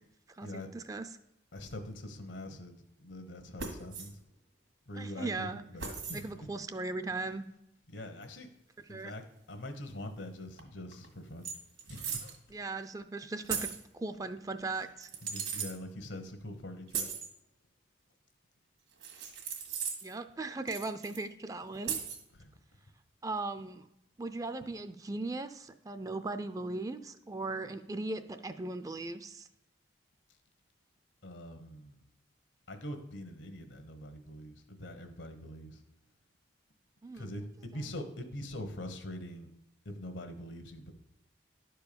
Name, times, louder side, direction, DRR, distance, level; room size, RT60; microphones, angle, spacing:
voice 1, 0.3-1.1 4.9-5.6 6.1-7.5 8.9-9.1 12.5-13.7 13.9-15.1 20.0-22.0 23.2-23.9 24.2-29.5 37.0-37.3, right 2 dB, 20° right, 10 dB, 0.4 m, -38 dB
voice 2, 1.5-4.2 4.9-6.5 7.9-8.5 8.9-11.5 11.8-12.4 15.2-17.1 22.3-22.5 31.2-32.0 32.7-35.8 37.1-39.5 39.8-40.9, left 1 dB, 75° left, 7 dB, 1.2 m, -43 dB
sound 1, 3.6-4.1 5.8-6.2 8.2-8.3 10.6-10.7 10.9-11.1 11.4-12.4 13.5-13.8 15.0-15.7 16.9-17.3 19.0-20.1 20.7-21.2 21.9-22.2, right 6 dB, 80° right, 1.8 m, -37 dB
11.0 x 4.6 x 6.8 m, 0.82 s
head